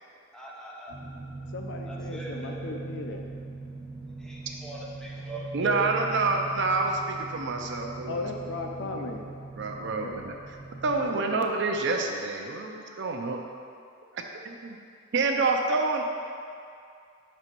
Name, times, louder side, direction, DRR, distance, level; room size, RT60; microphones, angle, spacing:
voice 1, 0.3-0.9 1.9-2.5 4.2-5.9, equal, 5° left, -5 dB, 0.9 m, -40 dB
sound 1, 0.9-11.0, right 3 dB, 80° right, 1.1 m, -40 dB
voice 2, 1.5-3.2 8.1-9.2 9.8-10.2 11.0-11.4, left 3 dB, 60° left, 2 dB, 0.6 m, -36 dB
voice 3, 5.5-8.1 8.8-9.1 9.6-10.3 10.8-13.4 14.4-14.8 15.1-16.0, right 3 dB, 60° right, 2 dB, 0.6 m, -27 dB
6.0 x 4.3 x 5.2 m, 2.4 s
head